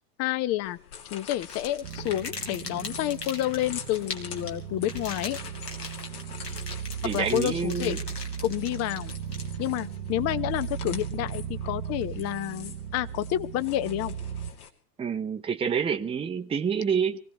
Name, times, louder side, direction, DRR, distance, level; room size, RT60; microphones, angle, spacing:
voice 1, 0.2-0.8 1.1-5.4 7.1-8.0 8.4-9.1 9.6-14.2, left 14 dB, 30° left, 1.0 m, -29 dB
sound 1, 0.6-14.7, left 8 dB, 65° left, 2.8 m, -46 dB
sound 2, 1.4-9.8, left 4 dB, 85° left, 3.9 m, -40 dB
sound 3, 1.8-14.5, right 9 dB, 50° right, 1.0 m, -37 dB
voice 2, 7.0-8.0 15.0-17.2, right 7 dB, 10° right, 0.9 m, -28 dB
25.0 x 17.5 x 3.1 m
figure-of-eight pair, 95°, 48 cm